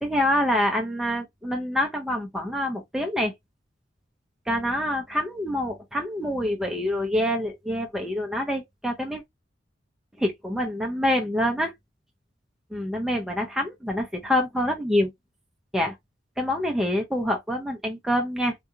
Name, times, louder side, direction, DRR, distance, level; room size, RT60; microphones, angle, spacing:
voice 1, 0.0-3.3 4.5-9.2 10.2-11.7 12.7-15.1 15.7-16.0 16.4-18.6, left 1 dB, 5° right, 0.5 m, -26 dB
3.7 x 2.7 x 2.3 m
head